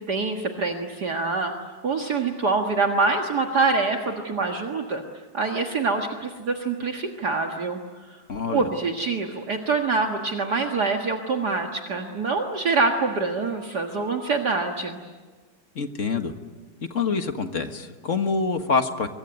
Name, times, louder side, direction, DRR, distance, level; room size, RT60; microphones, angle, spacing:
voice 1, 0.0-1.5 1.8-5.0 5.3-7.8 8.1-8.2 8.5-15.0, right 4 dB, 50° right, 3 dB, 2.2 m, -25 dB
voice 2, 8.3-8.7 15.8-16.3 16.9-19.1, left 4 dB, 40° left, 7 dB, 1.7 m, -26 dB
24.5 x 24.0 x 9.4 m, 1.3 s
omnidirectional pair, 2.3 m